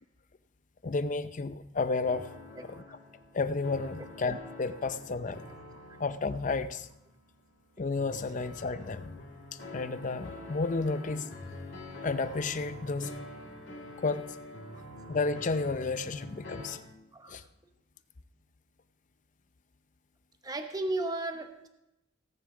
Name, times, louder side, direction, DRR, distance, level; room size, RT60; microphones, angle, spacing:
voice 1, 0.8-2.3 2.6-2.8 3.3-5.4 6.0-6.9 7.8-9.2 9.7-11.3 12.0-13.2 14.0-14.4 15.1-16.8 17.3-17.4, left 3 dB, 40° left, 12 dB, 0.5 m, -32 dB
sound 1, 2.1-16.8, left 2 dB, 70° left, 2.4 m, -46 dB
voice 2, 2.5-3.0 17.1-17.3 20.4-21.7, right 2 dB, 20° right, 6 dB, 0.9 m, -35 dB
17.5 x 9.3 x 3.9 m, 0.87 s
head